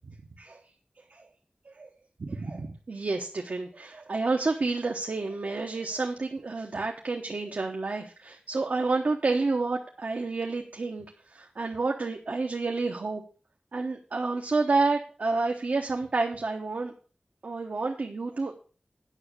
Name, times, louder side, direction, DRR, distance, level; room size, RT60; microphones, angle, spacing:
voice 1, 2.2-11.0 11.3-13.2 13.7-16.9 17.4-18.5, right 3 dB, 85° right, 1 dB, 1.1 m, -29 dB
9.8 x 6.0 x 6.8 m, 0.39 s
wide cardioid pair, 45°, 3 cm